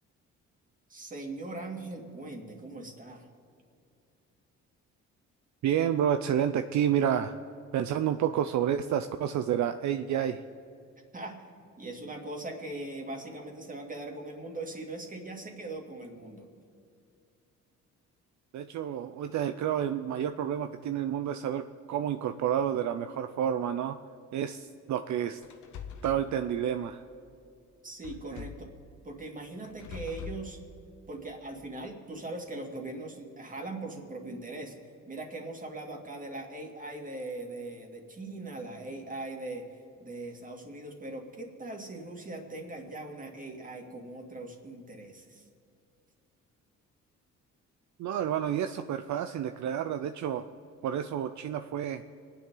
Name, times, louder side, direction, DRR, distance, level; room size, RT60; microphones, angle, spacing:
voice 1, 0.9-3.3 11.1-11.4 11.8-16.5 27.8-28.7 29.0-30.6 31.1-34.8 35.1-45.5, right 2 dB, 25° right, 1 dB, 2.5 m, -40 dB
voice 2, 5.6-7.4 7.7-10.4 18.5-24.0 24.3-25.4 26.0-27.0 28.3-28.4 48.0-50.5 50.8-52.0, right 9 dB, 70° right, 9 dB, 0.6 m, -29 dB
sound 1, 25.4-26.3 28.0-28.7 29.6-30.5, left 8 dB, 75° left, 1.1 m, -43 dB
25.0 x 9.9 x 3.9 m, 2.5 s
cardioid pair, 90°, 30 cm